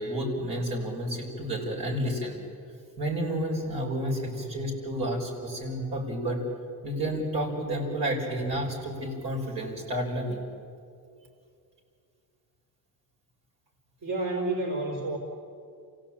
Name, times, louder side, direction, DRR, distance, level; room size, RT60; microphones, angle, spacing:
voice 1, 0.0-2.4 3.0-6.4 6.8-10.4, right 1 dB, 85° right, -1 dB, 6.0 m, -30 dB
voice 2, 14.0-15.2, right 2 dB, 60° right, 0 dB, 4.1 m, -30 dB
28.5 x 16.5 x 8.9 m, 2.4 s
cardioid pair, 150°, 36 cm